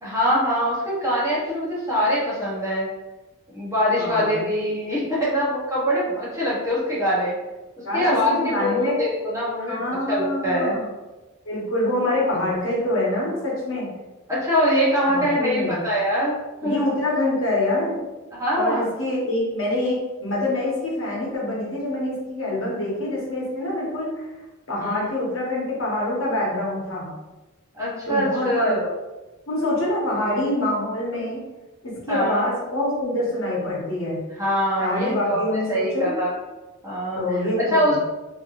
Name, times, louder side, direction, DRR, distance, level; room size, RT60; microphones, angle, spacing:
voice 1, 0.0-2.9 3.5-7.3 7.8-9.8 10.1-10.8 14.3-16.8 18.3-18.9 24.8-25.0 27.7-28.9 32.1-32.4 34.4-36.4 36.8-37.2 37.7-38.0, equal, 15° right, -7 dB, 0.9 m, -23 dB
voice 2, 3.9-4.4 7.8-9.0 9.6-10.9 11.4-13.9 15.1-15.8 16.6-18.0 18.5-24.1 24.7-27.1 28.1-28.8 29.5-31.4 31.8-34.2 34.8-36.1 37.1-38.0, left 1 dB, 65° left, -5 dB, 1.1 m, -25 dB
3.2 x 2.9 x 2.5 m, 1.1 s
head